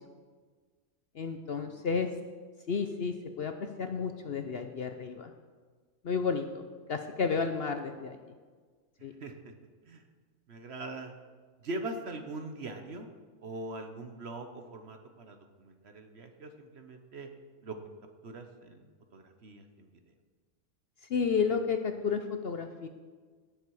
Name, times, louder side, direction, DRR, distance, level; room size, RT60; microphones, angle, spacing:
voice 1, 1.1-2.1 2.7-5.3 6.0-8.2 9.0-9.1 21.1-22.9, left 5 dB, 55° left, 7 dB, 0.8 m, -32 dB
voice 2, 1.7-2.0 9.2-9.5 9.9-10.0 10.5-11.1 11.6-13.1 13.4-17.3 17.6-17.8 18.2-19.9, right 2 dB, 50° right, 6 dB, 1.2 m, -42 dB
17.5 x 7.1 x 4.8 m, 1.5 s
omnidirectional pair, 1.5 m